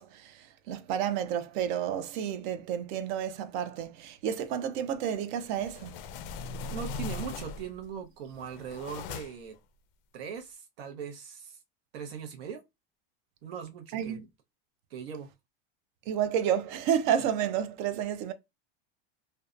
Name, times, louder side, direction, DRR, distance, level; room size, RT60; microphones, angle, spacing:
voice 1, 0.0-5.9 13.9-14.3 16.1-18.3, right 9 dB, 55° right, 0.4 m, -30 dB
sound 1, 5.4-7.8 8.3-9.5, left 4 dB, 70° left, 0.5 m, -39 dB
voice 2, 6.7-9.6 10.1-11.6 11.9-12.6 13.4-14.2 14.9-15.3, right 6 dB, 80° right, 0.8 m, -40 dB
2.6 x 2.2 x 2.4 m
supercardioid pair, 155°, 30 cm